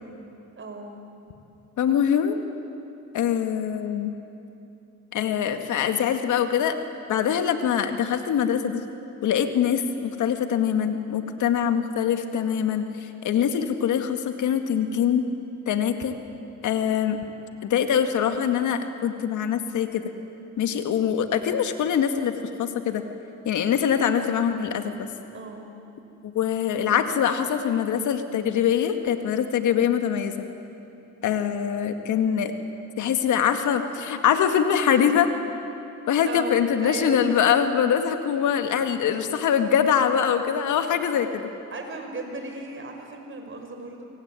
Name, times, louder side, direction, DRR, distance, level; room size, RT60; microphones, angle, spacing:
voice 1, 0.6-0.9 25.3-25.7 36.3-37.7 41.7-44.0, right 3 dB, 40° right, 4 dB, 5.5 m, -36 dB
voice 2, 1.8-2.4 3.1-4.1 5.1-6.8 7.1-8.8 9.2-15.2 15.7-16.2 16.6-17.2 17.6-20.0 20.6-23.0 23.5-25.1 26.3-30.3 31.2-32.5 33.0-35.3 36.1-41.4, left 8 dB, 75° left, 7 dB, 2.1 m, -23 dB
25.0 x 23.5 x 9.8 m, 2.8 s
cardioid pair, 90°, 30 cm